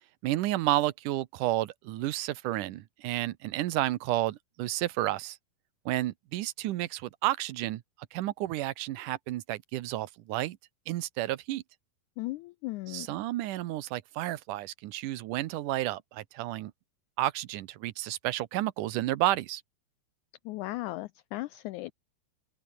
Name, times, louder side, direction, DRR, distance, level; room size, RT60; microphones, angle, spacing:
voice 1, 0.2-5.4 5.9-7.8 8.1-10.6 10.9-11.6 12.9-16.7 17.2-19.6, right 15 dB, 75° right, 2.3 m, -31 dB
voice 2, 12.2-13.1 20.4-21.9, left 19 dB, 90° left, 1.7 m, -36 dB
open air
omnidirectional pair, 4.0 m